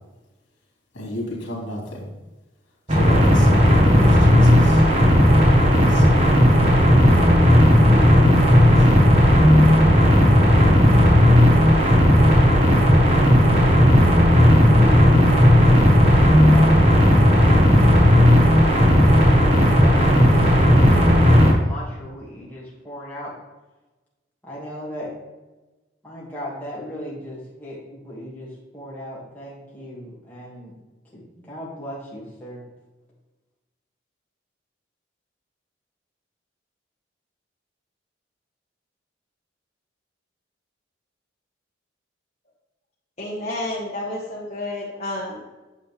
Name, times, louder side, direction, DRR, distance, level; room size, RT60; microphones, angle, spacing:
voice 1, 0.9-2.0 2.9-4.8 5.6-6.2 7.2-7.9 8.4-8.7, left 1 dB, 75° left, -2 dB, 2.9 m, -33 dB
sound 1, 2.9-21.5, equal, 35° right, 1.5 m, -14 dB
voice 2, 16.5-23.3 24.5-25.1 26.0-28.5 28.7-30.7 31.4-32.6, equal, 10° left, -7 dB, 2.3 m, -37 dB
voice 3, 43.2-45.5, left 1 dB, 35° left, -8 dB, 1.7 m, -30 dB
9.3 x 7.1 x 3.5 m, 1.1 s
head